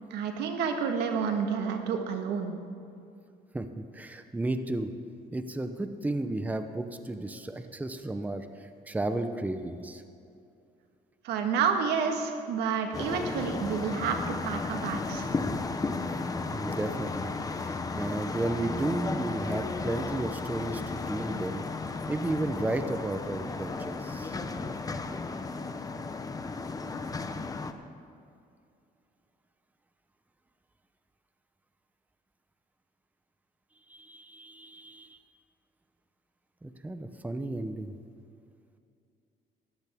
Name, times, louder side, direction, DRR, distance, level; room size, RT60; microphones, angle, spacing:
voice 1, 0.1-2.6 11.2-15.3, right 6 dB, 85° right, 5 dB, 1.6 m, -29 dB
voice 2, 3.5-4.9 5.3-10.0 16.4-21.6 22.1-24.4 33.9-35.2 36.6-37.9, right 2 dB, 10° right, 8 dB, 0.8 m, -33 dB
sound 1, 12.9-27.7, left 3 dB, 20° left, 0.8 m, -34 dB
19.0 x 14.5 x 3.6 m, 2.5 s
cardioid pair, 110°, 17 cm